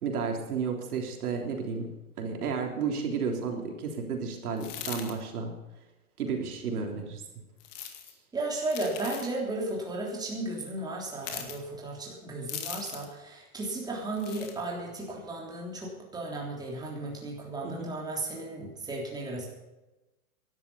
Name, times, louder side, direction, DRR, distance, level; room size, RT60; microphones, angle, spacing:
voice 1, 0.0-1.9 2.2-5.5 6.2-7.2 17.6-17.9, right 5 dB, 75° right, 2 dB, 3.6 m, -32 dB
sound 1, 4.6-5.1 7.6-8.1 8.7-9.3 11.2-11.6 12.5-13.1 14.1-14.5, left 10 dB, 40° left, 2.3 m, -39 dB
voice 2, 8.3-19.5, right 2 dB, 10° right, -2 dB, 3.4 m, -35 dB
15.5 x 12.0 x 5.6 m, 1.0 s
hypercardioid pair, 150°, 45 cm